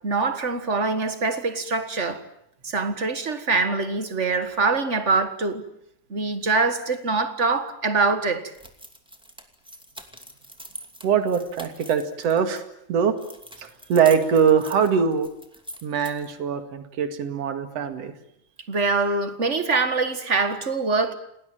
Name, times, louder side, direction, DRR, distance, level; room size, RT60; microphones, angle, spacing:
voice 1, 0.0-2.2 2.6-5.6 6.1-8.5 18.7-21.1, right 4 dB, 35° right, 1.3 m, -24 dB
sound 1, 8.5-12.6 13.2-16.4, equal, ahead, 1.9 m, -43 dB
voice 2, 11.0-12.6 12.9-13.2 13.6-15.3 15.8-18.1, right 7 dB, 55° right, 3.0 m, -22 dB
28.0 x 19.5 x 8.9 m
omnidirectional pair, 3.6 m